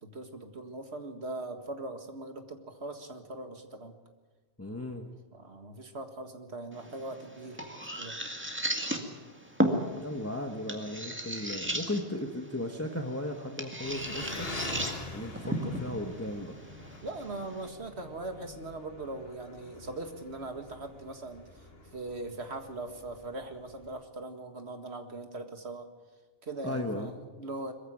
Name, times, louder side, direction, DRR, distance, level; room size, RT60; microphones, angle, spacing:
voice 1, 0.0-4.0 5.3-8.2 11.6-11.8 17.0-25.9 26.4-27.7, right 2 dB, 75° right, 6 dB, 2.1 m, -41 dB
voice 2, 4.6-5.1 9.9-14.5 15.1-16.5 26.6-27.1, left 1 dB, 15° left, 3 dB, 1.4 m, -36 dB
sound 1, 6.7-17.7, right 1 dB, 10° right, 2.0 m, -36 dB
Engine, 13.8-24.0, left 2 dB, 65° left, 2.2 m, -45 dB
22.0 x 15.0 x 9.4 m, 1.3 s
omnidirectional pair, 1.1 m